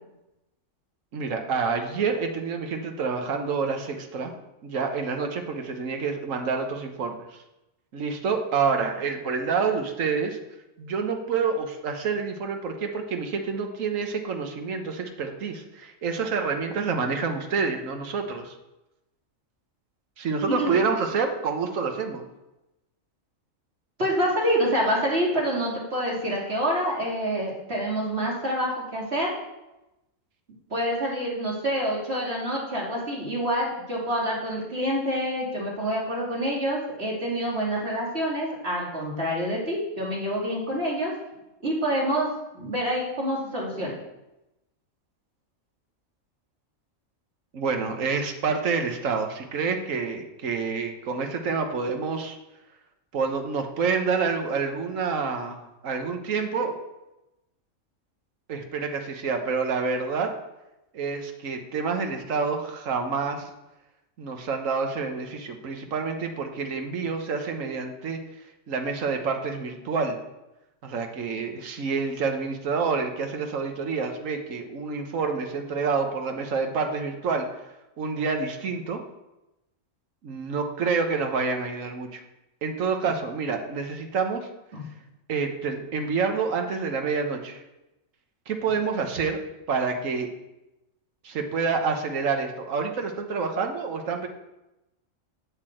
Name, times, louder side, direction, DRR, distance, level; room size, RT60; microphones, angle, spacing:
voice 1, 1.1-4.3 4.6-7.2 7.9-10.4 10.8-18.5 20.2-22.2 47.5-52.4 53.1-56.7 58.5-60.3 60.9-63.5 64.2-68.2 68.7-70.2 70.8-77.5 78.0-79.0 80.2-82.2 82.6-84.5 85.3-87.6 88.5-89.4 89.7-90.3 91.2-94.3, right 5 dB, 75° right, 4 dB, 1.5 m, -28 dB
voice 2, 24.0-29.3 30.7-41.1 41.6-43.9 84.7-84.8, equal, 50° right, -4 dB, 3.3 m, -27 dB
8.2 x 8.1 x 7.8 m, 0.96 s
omnidirectional pair, 1.4 m